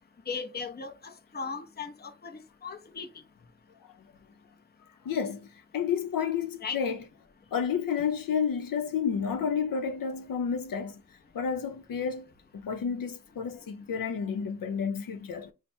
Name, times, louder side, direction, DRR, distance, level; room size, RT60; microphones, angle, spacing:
voice 1, 0.3-3.1 6.6-6.8, left 5 dB, 30° left, 0.6 m, -37 dB
voice 2, 5.0-5.5 5.7-7.0 7.5-11.0 11.3-15.5, left 7 dB, 90° left, 0.7 m, -30 dB
4.5 x 2.1 x 4.3 m
wide cardioid pair, 140°, 33 cm